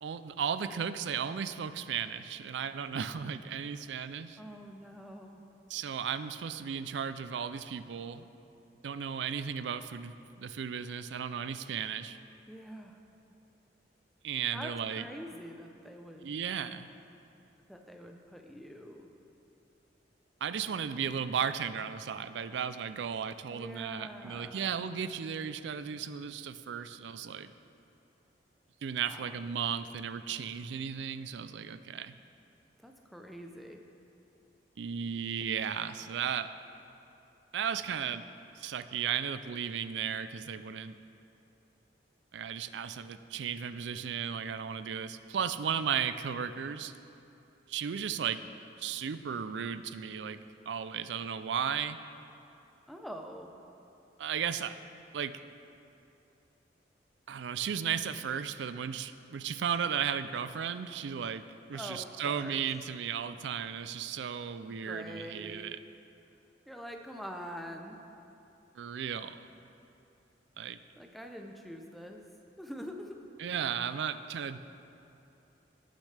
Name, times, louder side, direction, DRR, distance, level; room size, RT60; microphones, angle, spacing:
voice 1, 0.0-4.4 5.7-8.3 8.8-12.2 14.2-15.0 16.2-16.9 20.4-27.5 28.8-32.1 34.8-36.5 37.5-38.2 38.5-41.0 42.3-46.9 47.7-48.4 48.8-50.4 50.7-52.0 54.2-54.8 55.1-55.4 57.3-61.4 61.7-65.8 68.7-69.4 70.6-70.8 73.4-74.6, right 7 dB, 75° right, 13 dB, 0.4 m, -35 dB
voice 2, 4.4-5.5 12.5-13.0 14.5-16.3 17.7-19.1 23.5-24.8 29.1-29.4 32.8-33.9 52.9-53.6 61.7-62.6 64.7-65.8 66.7-68.0 71.0-72.3 72.6-73.2, equal, ahead, 3 dB, 0.6 m, -45 dB
18.0 x 6.5 x 3.3 m, 2.8 s
head